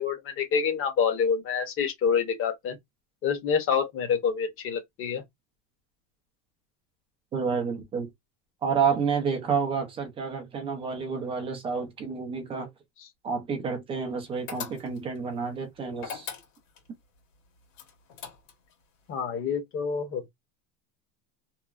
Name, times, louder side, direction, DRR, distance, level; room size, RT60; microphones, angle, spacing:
voice 1, 0.0-2.8 3.2-5.2 19.1-20.3, left 6 dB, 30° left, 0.9 m, -27 dB
voice 2, 7.3-8.1 8.6-12.7 13.2-16.3, right 5 dB, 15° right, 0.4 m, -29 dB
sound 1, 14.5-15.2 16.0-16.9 17.7-18.7, left 8 dB, 75° left, 1.6 m, -39 dB
3.0 x 2.2 x 2.4 m
cardioid pair, 165°, 44 cm